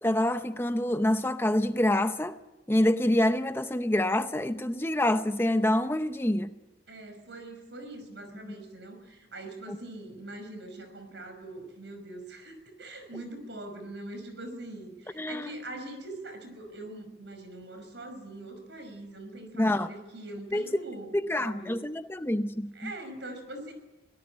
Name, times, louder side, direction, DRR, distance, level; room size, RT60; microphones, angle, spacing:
voice 1, 0.0-2.4 2.7-6.5 8.4-8.6 9.7-9.8 15.2-15.5 19.5-19.9 20.5-20.7 21.1-22.9, left 1 dB, 15° left, 0.7 m, -26 dB
voice 2, 6.9-21.7 22.7-23.7, right 2 dB, 75° right, 5.5 m, -42 dB
23.5 x 18.0 x 9.8 m
head